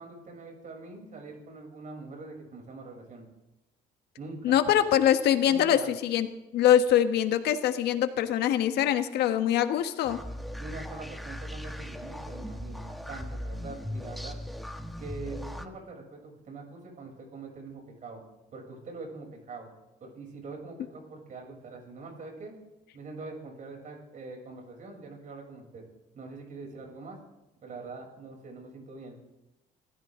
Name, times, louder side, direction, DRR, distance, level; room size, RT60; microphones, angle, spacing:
voice 1, 0.0-3.3 4.2-4.6 5.4-5.9 10.6-14.4 15.0-18.2 18.5-19.7 20.0-22.5 22.9-25.8 26.1-27.2 27.6-29.2, right 3 dB, 50° right, 1 dB, 7.4 m, -43 dB
voice 2, 4.4-6.3 6.5-10.2, left 10 dB, 75° left, 8 dB, 1.5 m, -23 dB
sound 1, 10.0-15.7, left 1 dB, ahead, 1.5 m, -38 dB
25.0 x 15.0 x 3.8 m, 0.97 s
cardioid pair, 110°, 17 cm